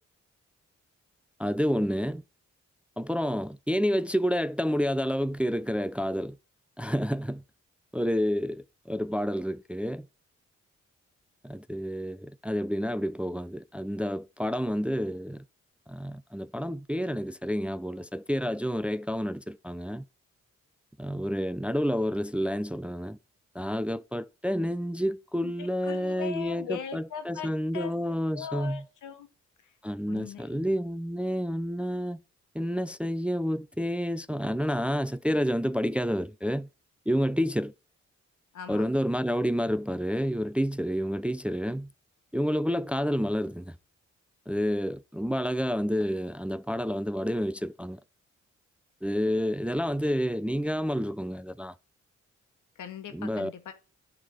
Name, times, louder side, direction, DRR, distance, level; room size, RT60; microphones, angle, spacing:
voice 1, 1.4-2.2 3.0-6.4 6.8-7.4 7.9-10.1 11.4-15.4 15.9-20.0 21.0-23.2 23.5-28.8 29.8-32.2 32.5-36.7 37.1-37.7 38.7-41.9 42.3-43.7 44.5-48.0 49.0-51.7 53.1-53.5, equal, 5° right, 0.4 m, -29 dB
voice 2, 25.4-29.3 30.1-30.6 38.5-38.9 52.8-53.7, left 8 dB, 85° left, 1.2 m, -40 dB
10.0 x 3.6 x 7.0 m
supercardioid pair, 45°, 30 cm